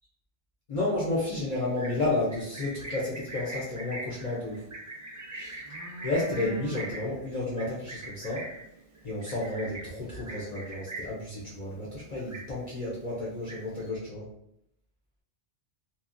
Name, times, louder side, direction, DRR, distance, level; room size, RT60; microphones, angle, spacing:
voice 1, 0.7-4.6 5.3-5.6 6.0-8.5 9.0-14.3, left 2 dB, 45° left, -6 dB, 0.6 m, -31 dB
Livestock farm animals working animals, 1.6-11.3 11.6-11.9 12.2-12.9 13.2-13.9, right 2 dB, 30° right, 0.3 m, -41 dB
2.8 x 2.3 x 2.5 m, 0.76 s
omnidirectional pair, 1.2 m